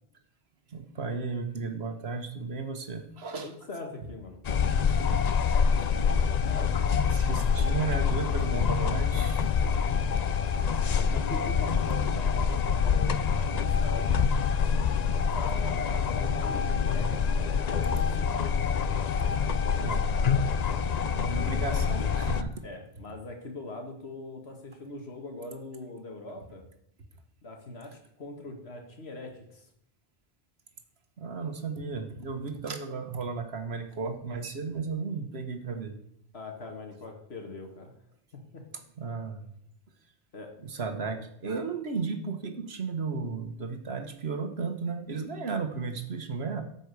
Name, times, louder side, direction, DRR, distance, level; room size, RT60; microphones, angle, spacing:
voice 1, 0.7-3.5 4.9-5.0 7.1-9.4 19.8-20.1 21.1-22.6 31.2-36.0 39.0-39.5 40.6-46.6, right 4 dB, 80° right, 7 dB, 1.5 m, -34 dB
voice 2, 3.4-4.4 6.4-6.8 10.9-14.2 15.1-18.5 20.7-21.5 22.6-26.6 27.4-29.7 36.3-37.9 38.5-38.6 40.3-40.5, left 2 dB, 90° left, 2 dB, 2.0 m, -42 dB
sound 1, 4.4-22.4, left 6 dB, 50° left, 0.6 m, -26 dB
13.5 x 5.4 x 8.3 m, 0.75 s
omnidirectional pair, 1.0 m